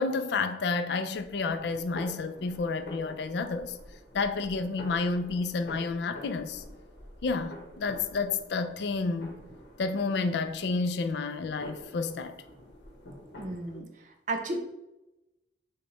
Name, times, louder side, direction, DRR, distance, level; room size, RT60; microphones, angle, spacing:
voice 1, 0.0-3.8 4.1-6.6 7.2-9.4 9.8-12.4, left 4 dB, 65° left, 0.4 m, -30 dB
sound 1, 1.1-13.8, equal, 80° left, 1.1 m, -48 dB
voice 2, 13.4-14.6, right 2 dB, 45° right, 0.6 m, -34 dB
6.2 x 2.2 x 3.1 m
head